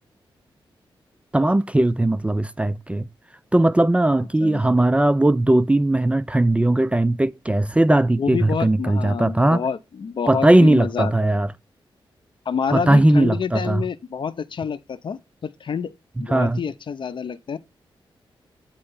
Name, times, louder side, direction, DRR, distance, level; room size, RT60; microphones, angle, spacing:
voice 1, 1.3-3.1 3.5-9.6 10.3-11.5 12.7-13.8 16.3-16.6, right 1 dB, 15° right, 0.4 m, -18 dB
voice 2, 4.1-4.6 8.2-11.3 12.5-17.6, left 6 dB, 60° left, 0.7 m, -28 dB
8.8 x 3.2 x 5.5 m
cardioid pair, 85°, 9 cm